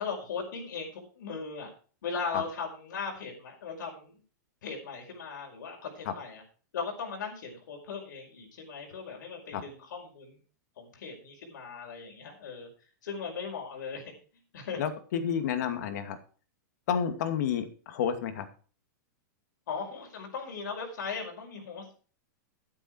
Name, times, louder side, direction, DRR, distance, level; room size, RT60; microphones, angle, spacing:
voice 1, 0.0-1.7 2.0-4.2 4.6-6.4 6.7-10.4 10.8-12.7 13.0-14.1 14.5-14.8 19.7-21.9, left 5 dB, 80° left, 1 dB, 5.2 m, -38 dB
voice 2, 14.8-16.2 16.9-18.5, left 8 dB, 65° left, 9 dB, 2.5 m, -30 dB
11.5 x 10.0 x 4.7 m, 0.38 s
supercardioid pair, 145°, 10 cm